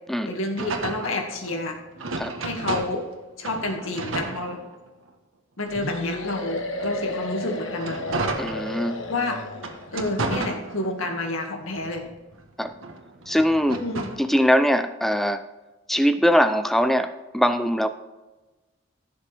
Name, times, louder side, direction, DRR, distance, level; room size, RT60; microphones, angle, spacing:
voice 1, 0.2-1.8 2.4-3.0 3.4-4.6 5.6-8.0 9.1-9.4 9.9-12.0 13.7-14.1, left 2 dB, 90° left, 2 dB, 2.1 m, -29 dB
sound 1, 0.6-3.1 3.4-5.1 5.6-9.1 9.5-11.2 11.6-14.3, right 3 dB, 80° right, 1.4 m, -33 dB
sound 2, 5.7-9.9, left 2 dB, 70° left, 1.3 m, -33 dB
voice 2, 8.4-9.0 12.6-12.7 13.3-13.8 14.2-15.5 15.9-17.9, equal, ahead, 10 dB, 0.4 m, -21 dB
15.0 x 7.1 x 3.5 m, 1.2 s
head